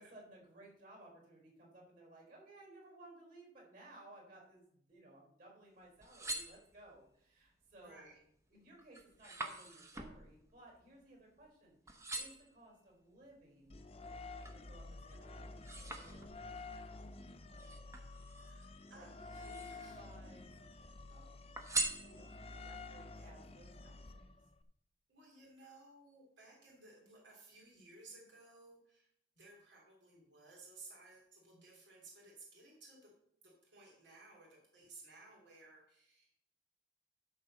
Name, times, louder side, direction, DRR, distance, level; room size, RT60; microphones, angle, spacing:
voice 1, 0.0-8.1 8.5-13.8 14.4-15.5 15.9-16.3 18.9-19.1 19.4-20.5 21.1-21.5 22.1-24.2, right 1 dB, 50° right, 0 dB, 4.4 m, -59 dB
sound 1, 5.9-7.1 7.7-8.1 8.5-11.6 11.9-12.6 13.2-14.7 15.1-16.6 17.5-18.7 19.2-20.0 20.3-21.1 21.6-22.6 23.1-23.2, right 2 dB, 15° right, 0.9 m, -44 dB
voice 2, 7.8-8.2 18.4-20.1 25.1-29.1 29.4-33.1 33.6-36.4, right 2 dB, 85° right, -3 dB, 3.2 m, -58 dB
sound 2, 13.7-24.6, left 3 dB, 35° left, 0.6 m, -50 dB
12.0 x 4.2 x 6.5 m, 0.72 s
head